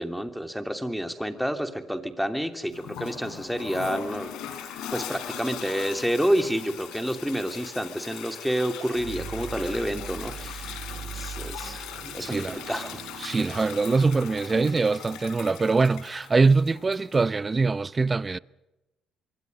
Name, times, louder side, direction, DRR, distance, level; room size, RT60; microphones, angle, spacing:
voice 1, 0.0-4.3 4.9-13.0, equal, ahead, 2.9 m, -29 dB
Toilet flush, 2.7-17.3, left 9 dB, 80° left, 3.7 m, -40 dB
sound 1, 8.8-15.4, right 8 dB, 65° right, 0.9 m, -41 dB
voice 2, 12.2-12.6 13.2-18.4, right 4 dB, 30° right, 0.8 m, -23 dB
26.0 x 23.0 x 5.4 m
supercardioid pair, 70°, 0 cm